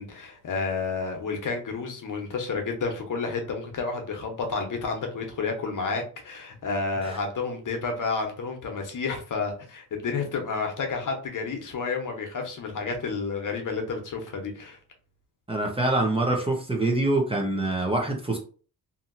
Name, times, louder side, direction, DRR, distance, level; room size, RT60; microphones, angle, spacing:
voice 1, 0.0-14.8, left 4 dB, 55° left, 0.9 m, -30 dB
voice 2, 15.5-18.4, right 2 dB, 15° right, 0.8 m, -25 dB
2.8 x 2.7 x 2.5 m
cardioid pair, 85°, 39 cm